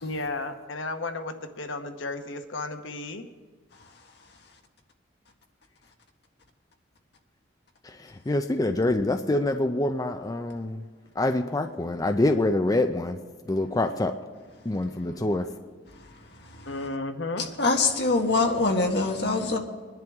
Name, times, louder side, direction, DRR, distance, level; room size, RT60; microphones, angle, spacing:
voice 1, 0.0-3.2 16.7-17.5, left 2 dB, 85° left, 7 dB, 1.0 m, -33 dB
voice 2, 7.8-10.8 11.2-13.2 13.5-14.1 14.7-15.5, left 2 dB, 20° left, 7 dB, 0.5 m, -26 dB
voice 3, 17.4-19.6, left 3 dB, 60° left, 3 dB, 1.5 m, -24 dB
22.0 x 10.5 x 3.6 m, 1.5 s
head